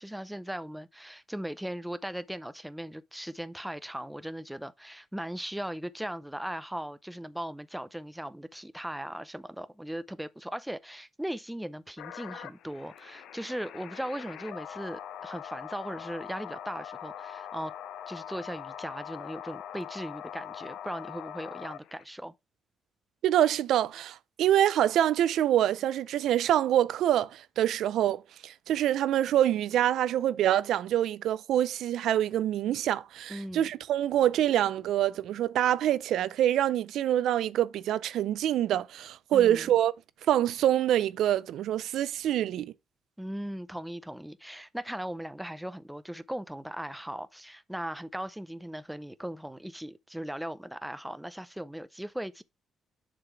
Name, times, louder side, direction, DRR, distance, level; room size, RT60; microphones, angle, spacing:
voice 1, 0.0-17.7 18.1-22.3 33.3-33.7 39.3-39.7 43.2-52.4, right 1 dB, 5° right, 0.5 m, -38 dB
sound 1, 12.0-22.0, left 10 dB, 80° left, 0.6 m, -42 dB
voice 2, 23.2-39.9 40.3-42.7, right 11 dB, 80° right, 0.5 m, -26 dB
6.8 x 3.8 x 4.6 m
cardioid pair, 90°, 0 cm